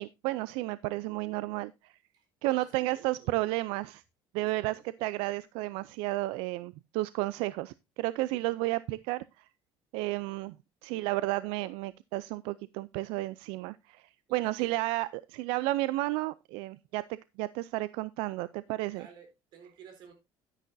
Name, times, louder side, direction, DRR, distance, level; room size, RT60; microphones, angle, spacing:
voice 1, 0.0-1.9 2.4-4.0 4.3-9.5 9.9-10.6 10.8-17.0 17.4-19.1, right 18 dB, 85° right, 0.4 m, -32 dB
voice 2, 2.1-3.4 4.4-5.1 14.3-14.8 18.9-20.1, right 7 dB, 55° right, 3.9 m, -54 dB
10.5 x 9.9 x 2.6 m
cardioid pair, 160°, 9 cm